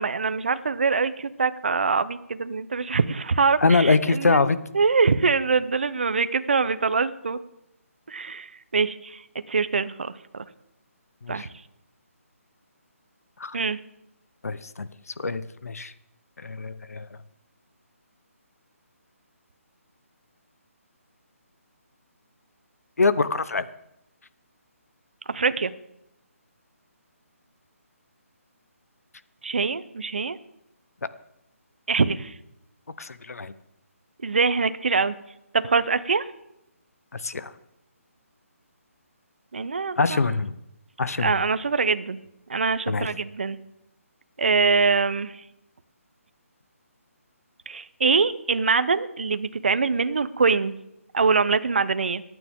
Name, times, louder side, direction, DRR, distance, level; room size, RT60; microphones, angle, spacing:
voice 1, 0.0-4.4 4.7-7.4 8.1-9.2 9.5-10.5 11.3-11.4 13.5-13.8 25.3-25.7 29.4-30.4 31.9-32.3 34.2-35.2 35.5-36.3 39.5-40.2 41.2-42.2 42.5-43.6 44.4-45.4 47.7-50.8 51.1-52.2, right 4 dB, 45° right, 13 dB, 0.7 m, -24 dB
voice 2, 3.6-4.6 11.2-11.5 13.4-13.6 14.4-14.9 15.2-15.9 16.4-17.1 23.0-23.7 33.0-33.5 37.1-37.5 40.0-40.5 41.0-41.4 42.9-43.1, left 3 dB, 85° left, 14 dB, 0.9 m, -24 dB
25.5 x 9.3 x 3.6 m, 0.85 s
hypercardioid pair, 180°, 8 cm